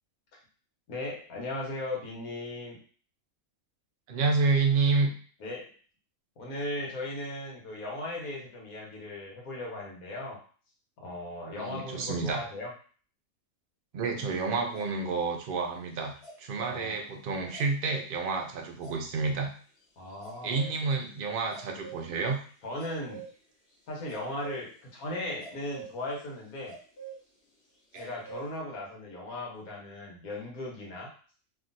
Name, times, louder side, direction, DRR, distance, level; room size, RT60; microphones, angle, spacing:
voice 1, 0.9-2.8 5.4-5.7 6.4-10.4 11.0-12.7 16.7-17.0 17.4-17.5 20.0-20.6 22.6-23.2 23.9-26.7 27.9-31.1, left 1 dB, 90° left, -2 dB, 1.4 m, -37 dB
voice 2, 4.1-5.1 11.5-12.4 13.9-16.1 16.4-19.5 20.4-22.4 27.9-28.0, right 4 dB, 60° right, 2 dB, 0.6 m, -29 dB
sound 1, 14.7-15.3 16.2-16.7 17.5-18.1 18.8-19.3 20.1-20.8 21.5-22.3 22.8-23.3 24.1-24.8 25.1-27.2 27.9-28.5, right 6 dB, 50° left, 1.4 m, -45 dB
2.9 x 2.5 x 2.5 m, 0.42 s
omnidirectional pair, 1.4 m